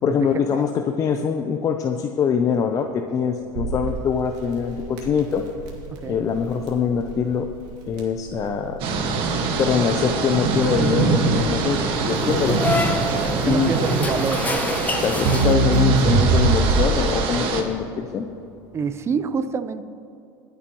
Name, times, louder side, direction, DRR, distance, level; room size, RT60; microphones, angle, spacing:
voice 1, 0.0-5.4 6.0-7.5 7.9-8.8 9.6-12.6 13.4-13.7 15.0-18.3, left 7 dB, 30° left, 5 dB, 0.6 m, -23 dB
Crackle, 3.5-17.1, right 3 dB, 75° right, 2.4 m, -24 dB
voice 2, 5.9-6.3 13.2-14.7 18.7-19.8, right 5 dB, 25° right, 12 dB, 0.6 m, -27 dB
sound 1, 8.8-17.6, right 4 dB, 55° right, 1.6 m, -24 dB
sound 2, 12.1-16.0, left 2 dB, 15° left, 0.9 m, -27 dB
23.0 x 8.4 x 3.0 m, 2.7 s
supercardioid pair, 120°, 11 cm